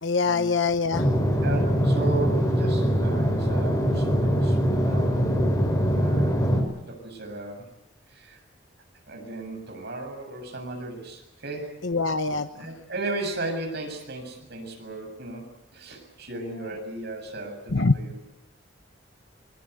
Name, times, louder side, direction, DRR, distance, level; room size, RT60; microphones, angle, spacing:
voice 1, 0.0-1.1 11.8-12.5 17.7-17.9, left 4 dB, 70° left, 8 dB, 1.0 m, -23 dB
sound 1, 0.9-6.6, equal, 20° left, 5.5 m, -22 dB
voice 2, 1.4-5.1 6.0-6.4 6.7-7.7 8.1-8.4 9.1-11.8 12.6-18.2, right 2 dB, 60° right, 4 dB, 7.4 m, -35 dB
24.5 x 23.5 x 8.2 m, 0.86 s
head